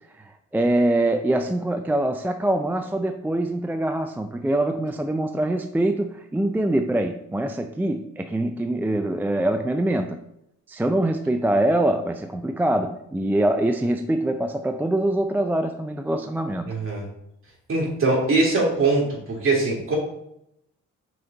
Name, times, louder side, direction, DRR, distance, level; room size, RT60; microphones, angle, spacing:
voice 1, 0.5-10.2 10.7-16.7, right 1 dB, 5° right, 6 dB, 0.4 m, -24 dB
voice 2, 16.7-17.0 17.7-20.0, right 3 dB, 45° right, -3 dB, 2.6 m, -22 dB
6.2 x 4.4 x 3.9 m, 0.79 s
cardioid pair, 90°, 30 cm